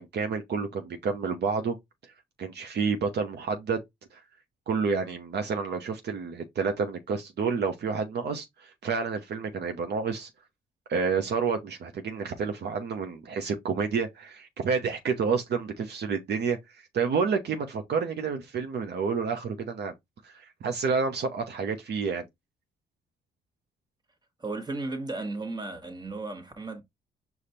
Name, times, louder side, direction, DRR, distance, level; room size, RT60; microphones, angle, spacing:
voice 1, 0.0-1.8 2.4-3.8 4.1-4.2 4.7-10.3 10.9-19.9 20.2-22.2, right 5 dB, 60° right, 0.9 m, -29 dB
voice 2, 24.4-26.8, right 2 dB, 20° right, 1.3 m, -35 dB
5.1 x 2.4 x 4.2 m
cardioid pair, 90°, 20 cm